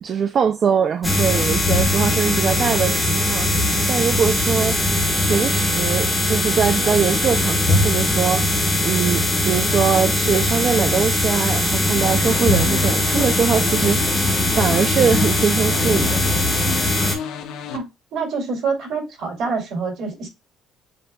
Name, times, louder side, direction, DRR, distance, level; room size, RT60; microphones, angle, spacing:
voice 1, 0.0-3.5 3.9-4.8 5.2-8.5 8.8-14.0 14.5-16.2, right 7 dB, 35° right, 0.4 m, -22 dB
sound 1, 1.0-17.2, left 1 dB, 5° left, 1.2 m, -20 dB
sound 2, 11.9-17.8, left 7 dB, 85° left, 0.7 m, -31 dB
voice 2, 17.7-20.3, right 4 dB, 60° right, 2.4 m, -26 dB
7.6 x 2.8 x 2.2 m
cardioid pair, 170°, 0 cm